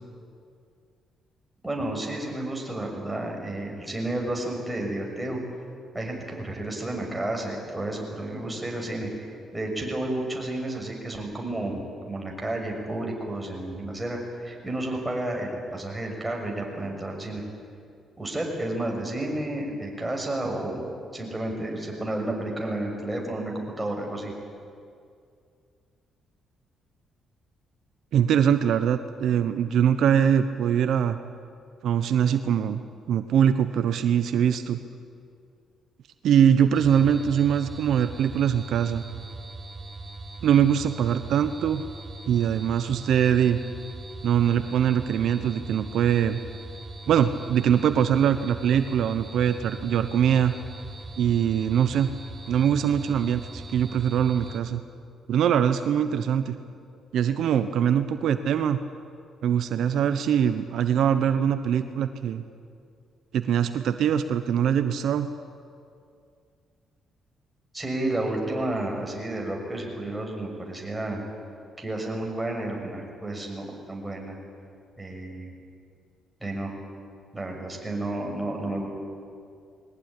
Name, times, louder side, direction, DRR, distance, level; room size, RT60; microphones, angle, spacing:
voice 1, 1.6-5.4 5.9-9.1 9.5-17.4 18.2-24.3 67.7-71.2 71.8-74.4 75.0-75.5 76.4-76.7 77.3-78.9, right 1 dB, 10° right, 0 dB, 6.3 m, -31 dB
voice 2, 28.1-31.2 31.8-32.8 33.1-34.8 36.2-39.0 40.4-41.8 42.3-43.6 44.2-46.4 47.1-50.5 51.2-52.1 52.5-54.8 55.3-56.6 57.1-58.8 59.4-62.4 63.3-65.3, right 9 dB, 75° right, 10 dB, 1.0 m, -22 dB
sound 1, 36.7-54.6, right 2 dB, 30° right, 2.3 m, -40 dB
21.5 x 19.0 x 10.0 m, 2.3 s
cardioid pair, 90°, 0 cm